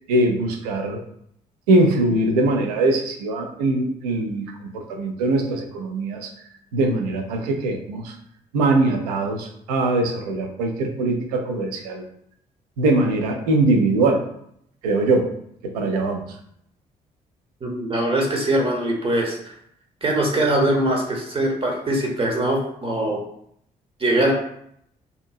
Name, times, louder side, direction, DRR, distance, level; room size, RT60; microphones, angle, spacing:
voice 1, 0.1-1.0 1.7-4.5 4.7-6.3 6.7-8.1 8.5-12.0 12.8-14.2 14.8-15.3 15.6-16.2, right 2 dB, 70° right, 3 dB, 0.4 m, -21 dB
voice 2, 17.6-19.5 20.0-23.2 24.0-24.3, right 1 dB, 25° right, 0 dB, 0.7 m, -22 dB
2.7 x 2.6 x 2.3 m, 0.70 s
figure-of-eight pair, 40°, 21 cm